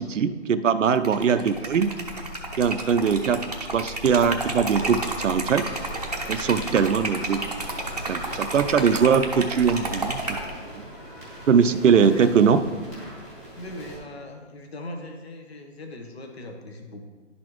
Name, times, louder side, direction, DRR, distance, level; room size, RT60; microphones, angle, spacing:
voice 1, 0.0-1.9 2.6-5.7 6.3-7.4 8.1-10.2 10.7-10.8 11.5-12.6, right 6 dB, 75° right, 11 dB, 0.6 m, -21 dB
Liquid, 1.0-10.5, right 2 dB, 35° right, 0.7 m, -31 dB
sound 1, 5.5-14.0, equal, 15° left, 1.6 m, -41 dB
voice 2, 11.9-12.3 13.6-17.1, left 1 dB, 55° left, 4 dB, 1.0 m, -38 dB
11.0 x 4.2 x 3.0 m, 1.5 s
hypercardioid pair, 180°, 37 cm